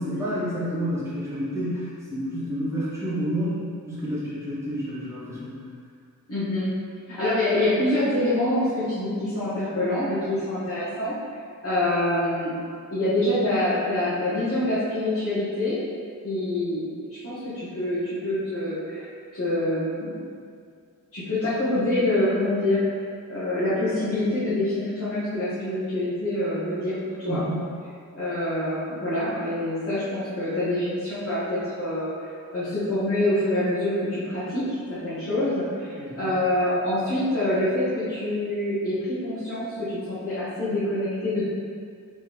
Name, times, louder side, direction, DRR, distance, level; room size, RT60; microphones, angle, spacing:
voice 1, 0.0-5.5 27.3-27.6 36.0-36.3, equal, 10° right, -12 dB, 1.5 m, -29 dB
voice 2, 6.3-6.7 7.1-11.1 11.6-12.5 12.9-15.8 16.2-20.2 21.1-22.9 23.3-27.0 27.2-27.4 28.1-32.1 32.5-41.4, left 1 dB, 40° left, -14 dB, 1.4 m, -26 dB
4.0 x 4.0 x 3.2 m, 2.2 s
wide cardioid pair, 140°, 36 cm